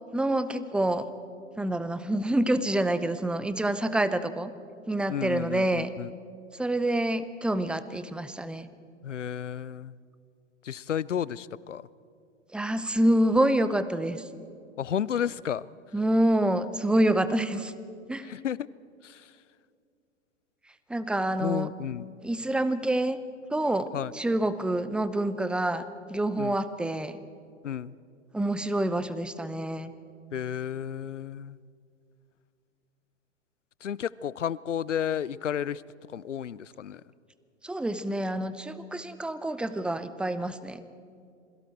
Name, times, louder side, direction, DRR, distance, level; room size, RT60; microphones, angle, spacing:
voice 1, 0.1-1.1 1.6-4.5 4.9-5.9 6.5-8.7 12.5-14.3 15.9-17.7 18.1-18.3 20.9-21.7 22.2-23.2 23.5-25.8 26.1-27.2 28.3-29.9 37.6-40.8, right 1 dB, 5° right, 13 dB, 0.7 m, -27 dB
voice 2, 5.1-6.1 9.0-9.9 10.6-11.8 14.8-15.7 18.2-18.6 19.0-19.2 21.4-22.1 23.9-24.1 26.4-26.5 27.6-27.9 30.3-31.6 33.8-35.8 36.1-37.0, left 9 dB, 85° left, 21 dB, 0.5 m, -32 dB
27.0 x 21.5 x 4.5 m, 2.4 s
figure-of-eight pair, 95°, 36 cm